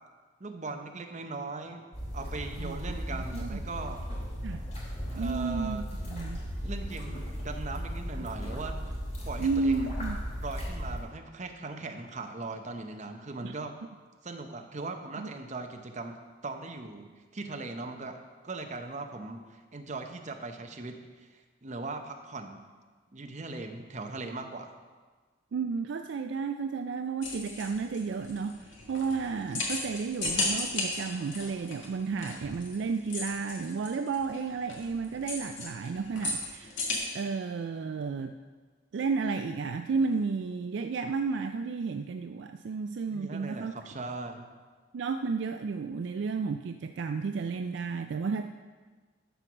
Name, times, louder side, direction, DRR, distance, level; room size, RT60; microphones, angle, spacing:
voice 1, 0.4-1.9 2.1-4.1 5.1-5.9 6.6-8.8 9.2-9.8 10.4-13.8 14.2-22.6 23.1-24.7 43.1-44.5, right 3 dB, 35° right, 5 dB, 0.7 m, -39 dB
sound 1, 1.9-11.0, equal, 35° left, 2.7 m, -36 dB
voice 2, 3.1-3.6 4.4-4.6 5.1-6.4 9.4-10.2 13.4-13.5 15.2-15.3 25.5-36.8 37.1-38.4 38.9-43.7 44.9-48.5, right 4 dB, 60° right, 7 dB, 0.3 m, -32 dB
sound 2, 27.2-37.0, left 2 dB, 65° left, 2.0 m, -35 dB
12.0 x 4.6 x 6.0 m, 1.4 s
head